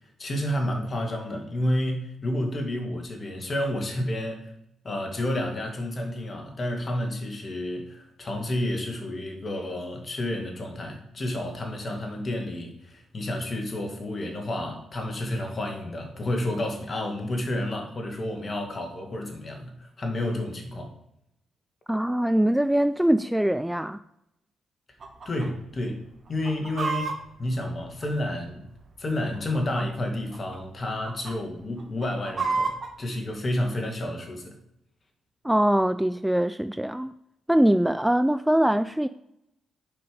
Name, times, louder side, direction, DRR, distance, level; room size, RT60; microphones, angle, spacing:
voice 1, 0.2-4.5 4.8-20.9 25.3-26.0 26.3-28.7 29.0-34.6, left 1 dB, 40° left, 1.9 m, -30 dB
voice 2, 21.9-24.0 35.4-37.1 37.5-39.1, right 1 dB, 5° right, 0.3 m, -22 dB
Chicken rooster, 25.0-25.5 25.7-25.8 26.3-28.5 29.3-30.0 30.3-30.6 30.9-31.3 31.8-32.9, right 4 dB, 45° right, 1.4 m, -30 dB
6.9 x 5.3 x 5.2 m
supercardioid pair, 55°, 0 cm